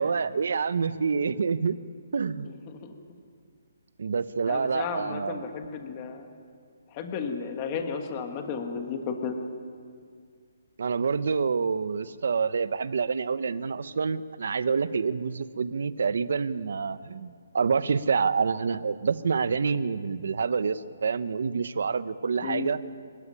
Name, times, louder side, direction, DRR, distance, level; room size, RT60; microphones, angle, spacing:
voice 1, 0.0-1.8 2.1-2.5 4.0-5.4 10.8-22.8, right 5 dB, 60° right, 14 dB, 1.0 m, -27 dB
voice 2, 4.5-6.3 6.9-9.4 22.4-22.7, left 6 dB, 20° left, 5 dB, 1.5 m, -33 dB
25.5 x 15.5 x 9.9 m, 2.1 s
hypercardioid pair, 175°, 0 cm